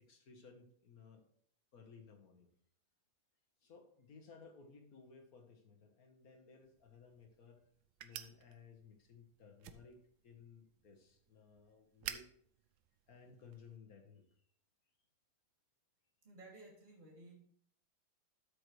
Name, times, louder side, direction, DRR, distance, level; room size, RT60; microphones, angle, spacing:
voice 1, 0.1-1.2 1.7-2.5 3.6-7.6 8.0-12.3 13.1-14.2, left 5 dB, 50° left, 4 dB, 1.6 m, -59 dB
sound 1, 6.6-13.8, right 11 dB, 80° right, 1.4 m, -53 dB
voice 2, 16.2-17.3, right 2 dB, 25° right, -3 dB, 2.6 m, -56 dB
12.0 x 6.7 x 3.2 m, 0.63 s
omnidirectional pair, 2.1 m